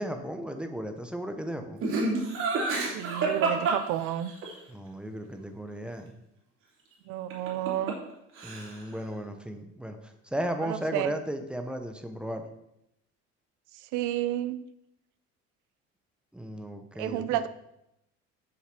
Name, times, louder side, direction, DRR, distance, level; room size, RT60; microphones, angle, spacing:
voice 1, 0.0-1.8 4.7-6.1 8.4-12.5 16.3-17.4, equal, 5° right, 6 dB, 0.8 m, -35 dB
Laughter, 1.8-4.5 7.3-8.1 8.4-8.9, right 3 dB, 45° right, 3.2 m, -28 dB
voice 2, 2.8-4.3 7.1-8.0 10.6-11.1 13.9-14.6 17.0-17.5, right 13 dB, 85° right, 13 dB, 0.6 m, -31 dB
8.0 x 6.8 x 6.0 m, 0.82 s
cardioid pair, 155°, 29 cm